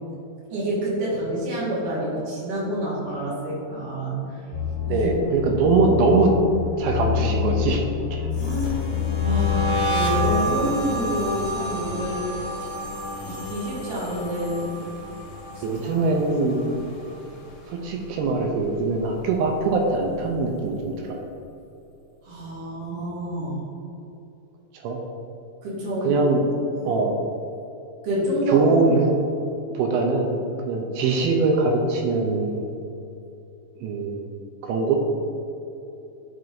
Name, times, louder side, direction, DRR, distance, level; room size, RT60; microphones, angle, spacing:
voice 1, 0.5-4.4 4.9-5.3 8.3-8.9 9.2-12.4 13.2-14.7 15.5-16.0 22.2-23.6 25.6-26.1 26.8-26.9 28.0-28.7, right 1 dB, 65° right, -7 dB, 2.9 m, -28 dB
sound 1, 4.5-10.5, left 9 dB, 85° left, 2.8 m, -27 dB
voice 2, 4.9-6.3 6.8-7.8 15.6-16.7 17.7-21.2 24.8-25.0 26.0-26.4 26.9-27.2 28.5-29.2 29.7-32.7 33.8-34.3 34.6-35.0, right 3 dB, 80° right, 1 dB, 2.3 m, -22 dB
sound 2, 8.3-17.5 17.8-18.2 18.5-20.1, equal, 70° left, 2.1 m, -30 dB
10.5 x 4.7 x 2.6 m, 2.7 s
omnidirectional pair, 4.6 m